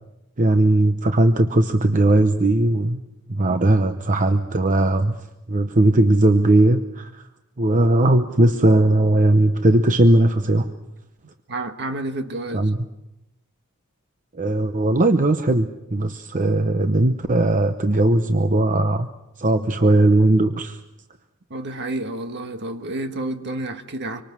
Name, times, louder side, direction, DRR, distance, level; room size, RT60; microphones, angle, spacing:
voice 1, 0.4-3.0 3.3-7.2 7.6-10.7 12.5-12.8 14.3-19.1 19.4-20.8, right 1 dB, 35° right, 8 dB, 0.8 m, -18 dB
voice 2, 11.5-12.7 21.5-24.2, right 2 dB, 55° right, 7 dB, 1.6 m, -30 dB
26.0 x 25.0 x 6.1 m, 0.93 s
head